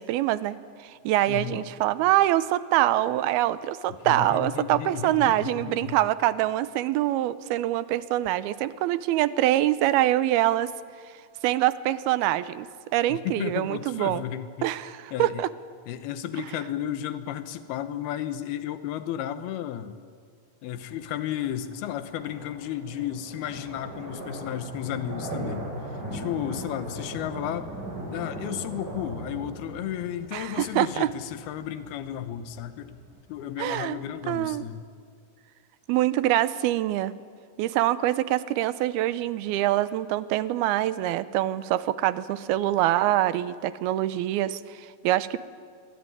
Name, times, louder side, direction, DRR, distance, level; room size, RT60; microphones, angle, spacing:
voice 1, 0.0-10.7 11.4-12.7 12.9-14.3 14.6-15.5 30.3-31.1 33.6-34.0 34.3-34.7 35.9-37.1 37.6-45.4, right 14 dB, 80° right, 15 dB, 2.7 m, -25 dB
voice 2, 1.3-1.6 4.0-6.0 13.1-14.7 15.1-15.4 15.9-20.0 20.6-25.7 26.1-27.7 28.1-33.0 33.3-34.8, left 11 dB, 80° left, 10 dB, 3.1 m, -33 dB
sound 1, 20.7-34.6, right 1 dB, 30° right, 8.7 m, -39 dB
27.0 x 22.0 x 9.9 m, 2.1 s
omnidirectional pair, 4.4 m